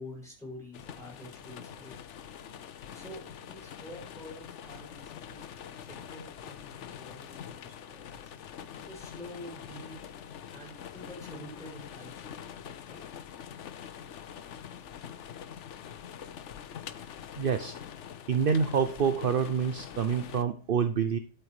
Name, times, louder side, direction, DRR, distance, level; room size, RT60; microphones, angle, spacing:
voice 1, 0.0-2.0 2.9-5.5 5.9-8.3 8.7-10.0 10.5-12.4 12.8-13.0, left 1 dB, 5° left, -1 dB, 7.5 m, -47 dB
sound 1, 0.7-20.4, left 8 dB, 85° left, 1.1 m, -45 dB
voice 2, 17.4-17.7 18.3-21.2, right 6 dB, 55° right, 10 dB, 1.0 m, -27 dB
12.0 x 8.1 x 5.0 m, 0.39 s
omnidirectional pair, 1.2 m